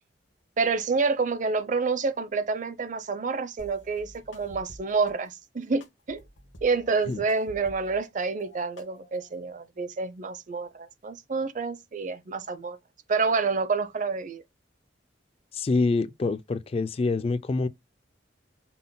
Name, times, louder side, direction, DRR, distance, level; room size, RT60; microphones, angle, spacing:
voice 1, 0.6-6.2 6.6-12.8 13.1-14.4, right 4 dB, 45° right, 0.6 m, -28 dB
sound 1, 3.6-5.1 5.8-8.1 8.4-9.4, equal, 85° left, 1.2 m, -50 dB
voice 2, 15.5-17.7, left 3 dB, 35° left, 0.3 m, -26 dB
5.6 x 2.1 x 3.8 m
head